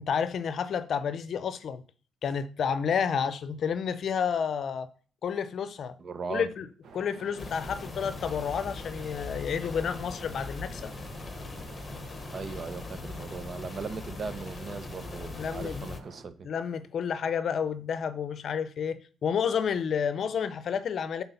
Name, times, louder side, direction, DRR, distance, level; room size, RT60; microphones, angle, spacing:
voice 1, 0.0-1.8 2.2-4.9 5.2-6.0 6.3-6.7 6.9-10.9 15.4-15.9 16.4-21.2, left 7 dB, 60° left, 0.6 m, -30 dB
voice 2, 6.0-6.5 12.3-16.5, right 5 dB, 45° right, 0.8 m, -38 dB
sound 1, 6.8-16.2, right 4 dB, 70° right, 1.1 m, -50 dB
sound 2, 7.4-16.0, left 3 dB, 35° left, 1.0 m, -40 dB
8.0 x 4.2 x 5.7 m
cardioid pair, 90°, 0 cm